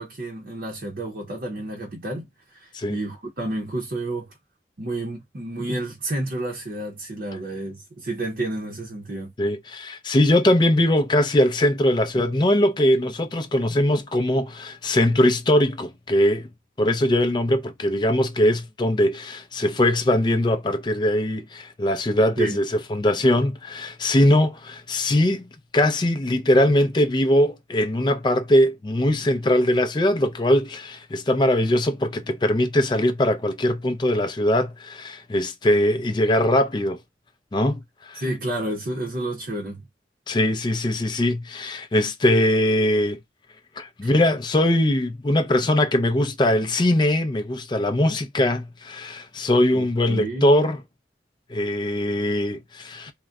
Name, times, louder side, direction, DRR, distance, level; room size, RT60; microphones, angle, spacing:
voice 1, 0.0-4.3 4.8-9.3 12.2-12.3 22.4-22.6 38.1-39.8 44.0-44.1 49.7-50.5, right 2 dB, 55° right, 0.7 m, -30 dB
voice 2, 9.4-16.5 16.8-25.4 25.7-37.0 37.5-38.2 40.3-43.2 43.8-50.8 51.5-53.1, left 1 dB, 25° left, 0.4 m, -21 dB
3.7 x 2.0 x 2.2 m
head